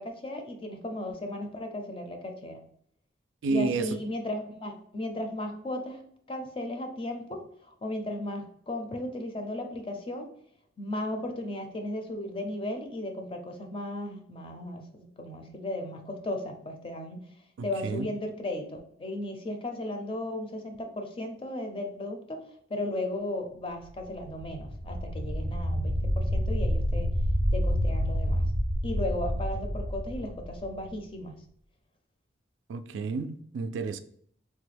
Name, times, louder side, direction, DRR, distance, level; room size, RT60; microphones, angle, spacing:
voice 1, 0.0-2.6 3.5-6.0 6.3-10.3 10.8-17.2 17.6-22.4 22.7-27.1 27.5-28.4 28.8-31.4, left 1 dB, 30° left, 4 dB, 0.5 m, -35 dB
voice 2, 3.4-3.9 17.6-18.1 32.7-34.0, right 4 dB, 85° right, 10 dB, 0.3 m, -30 dB
sound 1, 24.2-31.0, equal, 90° left, 1.0 m, -28 dB
3.2 x 2.2 x 3.2 m, 0.62 s
head